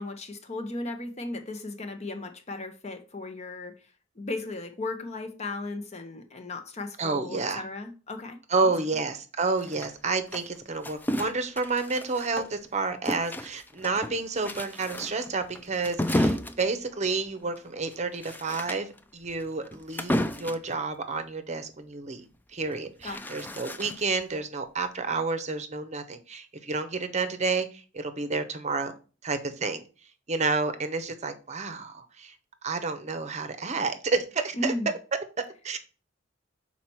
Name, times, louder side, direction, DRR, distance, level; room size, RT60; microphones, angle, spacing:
voice 1, 0.0-3.7 4.2-8.7 23.0-23.4 34.5-34.9, left 2 dB, 35° left, 0.9 m, -36 dB
voice 2, 7.0-7.6 8.5-22.2 22.5-28.9 29.2-29.8 30.3-32.3 32.6-34.7 35.4-35.8, right 4 dB, 35° right, 0.7 m, -30 dB
sound 1, 9.6-12.7 13.1-20.7 22.6-24.2, left 1 dB, 10° left, 0.4 m, -32 dB
5.8 x 4.2 x 4.5 m
head